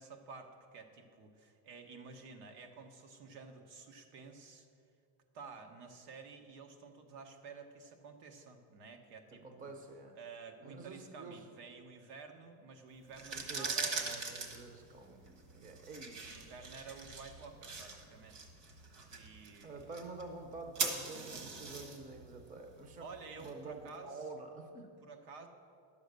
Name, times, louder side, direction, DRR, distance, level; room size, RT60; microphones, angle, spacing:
voice 1, 0.0-4.7 5.3-9.7 10.1-14.3 16.1-18.4 19.1-19.9 23.0-24.3 25.0-25.5, right 4 dB, 85° right, 5 dB, 1.4 m, -51 dB
voice 2, 9.3-10.2 10.6-11.5 13.3-15.2 15.5-16.7 19.6-23.0 23.4-24.9, right 3 dB, 15° right, 5 dB, 0.6 m, -48 dB
sound 1, 13.1-23.9, right 4 dB, 55° right, 1.5 m, -42 dB
10.5 x 7.1 x 6.6 m, 2.5 s
cardioid pair, 160°, 48 cm